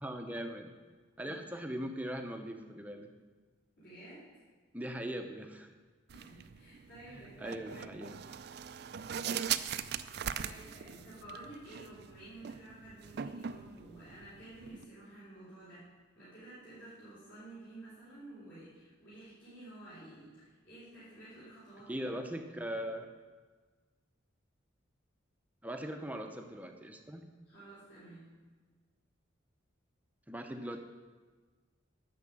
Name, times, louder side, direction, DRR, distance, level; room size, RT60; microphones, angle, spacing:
voice 1, 0.0-0.7 1.2-3.1 4.7-5.7 7.1-8.2 21.9-23.1 25.6-27.3 30.3-30.8, equal, 10° right, 4 dB, 0.6 m, -40 dB
voice 2, 3.8-4.3 6.1-8.1 10.2-15.8 16.1-22.4 27.5-28.3, right 1 dB, 55° left, -11 dB, 4.1 m, -52 dB
sound 1, 6.1-14.8, right 8 dB, 55° right, 0.4 m, -41 dB
9.6 x 6.5 x 7.6 m, 1.4 s
head